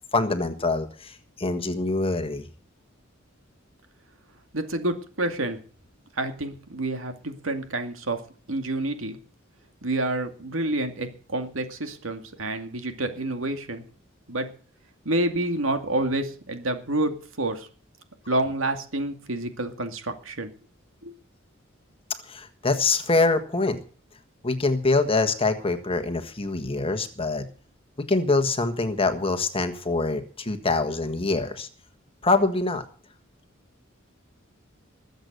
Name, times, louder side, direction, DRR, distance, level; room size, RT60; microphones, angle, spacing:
voice 1, 0.1-2.5 22.3-23.8 24.4-27.5 28.0-31.7 32.2-32.8, left 3 dB, 30° left, 9 dB, 1.5 m, -24 dB
voice 2, 4.5-5.6 6.2-8.2 8.5-9.2 9.8-13.8 14.3-14.5 15.0-17.1 17.4-17.7 18.3-20.5 21.0-21.1, right 2 dB, 80° right, 6 dB, 2.3 m, -28 dB
20.5 x 8.0 x 6.7 m, 0.40 s
head